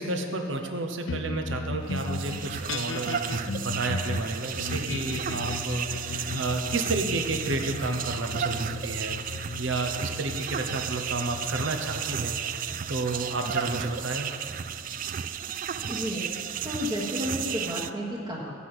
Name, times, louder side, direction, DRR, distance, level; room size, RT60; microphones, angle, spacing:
voice 1, 0.0-14.3, right 2 dB, 75° right, 4 dB, 1.0 m, -31 dB
sound 1, 1.1-15.8, left 4 dB, 75° left, 0.5 m, -37 dB
sound 2, 1.8-17.9, right 8 dB, 45° right, 0.4 m, -33 dB
voice 2, 15.9-18.5, equal, 25° right, -5 dB, 1.5 m, -32 dB
15.5 x 6.0 x 7.8 m, 2.4 s
head